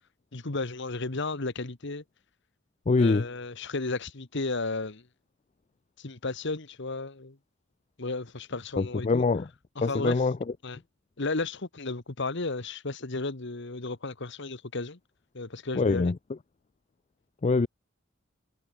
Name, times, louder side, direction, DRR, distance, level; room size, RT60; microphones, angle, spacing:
voice 1, 0.3-2.0 3.0-5.0 6.0-7.4 8.0-9.2 9.7-10.2 10.6-10.8 11.2-15.0 15.3-16.1, left 3 dB, 60° left, 1.5 m, -33 dB
voice 2, 2.9-3.3 8.8-9.5 9.8-10.4 15.8-16.2 17.4-17.7, left 3 dB, 35° left, 0.4 m, -24 dB
head